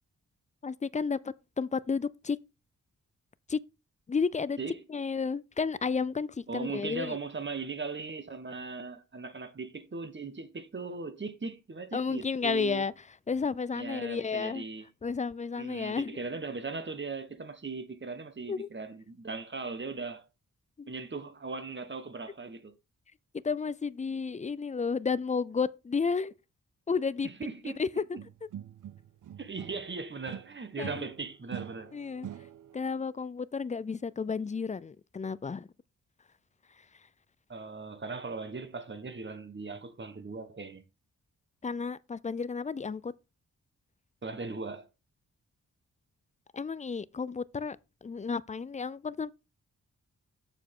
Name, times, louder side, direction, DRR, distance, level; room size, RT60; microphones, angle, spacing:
voice 1, 0.6-2.4 3.5-3.6 4.1-4.6 4.9-7.2 11.9-12.9 13.3-14.6 15.0-16.2 18.5-18.7 20.8-20.9 23.4-26.3 26.9-27.3 27.8-28.0 30.8-31.1 31.9-32.3 32.7-35.7 41.6-43.1 46.5-49.3, left 5 dB, 25° left, 0.4 m, -32 dB
voice 2, 6.5-12.9 13.7-14.9 15.6-20.2 20.9-22.7 27.2-27.8 29.4-31.9 37.5-40.8 44.2-44.9, right 4 dB, 35° right, 1.3 m, -39 dB
sound 1, 28.2-29.9 30.3-32.9, right 10 dB, 70° right, 0.5 m, -44 dB
7.2 x 6.8 x 3.7 m
wide cardioid pair, 85°, 32 cm